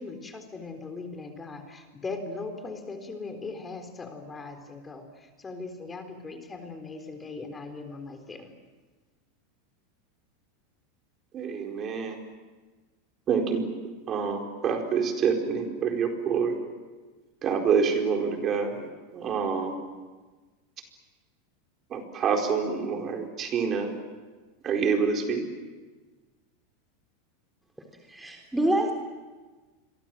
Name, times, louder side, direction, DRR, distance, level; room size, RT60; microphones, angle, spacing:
voice 1, 0.0-8.5, left 3 dB, 20° left, 6 dB, 4.0 m, -39 dB
voice 2, 11.3-12.2 13.3-13.6 14.1-16.6 17.4-19.7 21.9-23.9 24.6-25.4, right 6 dB, 35° right, 3 dB, 4.4 m, -27 dB
voice 3, 28.1-28.9, right 1 dB, 5° right, 2 dB, 3.6 m, -26 dB
28.5 x 23.5 x 7.7 m, 1.3 s
hypercardioid pair, 105°, 0 cm